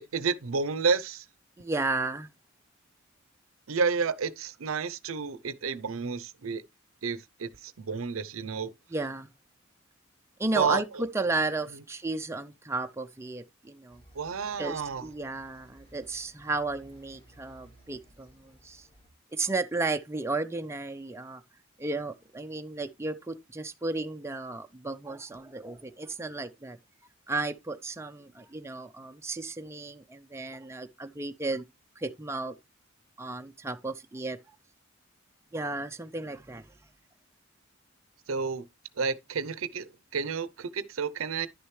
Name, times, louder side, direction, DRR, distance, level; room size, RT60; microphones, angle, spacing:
voice 1, 0.1-1.2 3.7-6.6 7.0-8.7 10.6-10.8 14.1-15.0 38.3-38.6 39.0-41.5, right 5 dB, 90° right, 0.6 m, -30 dB
voice 2, 1.6-2.3 8.9-9.3 10.4-14.0 14.6-18.9 19.3-21.4 21.8-26.8 27.3-31.6 32.0-32.5 33.2-34.4 35.5-36.7, right 3 dB, 15° right, 0.6 m, -33 dB
sound 1, 13.9-19.1, right 1 dB, 25° left, 2.6 m, -58 dB
11.0 x 6.5 x 3.2 m
head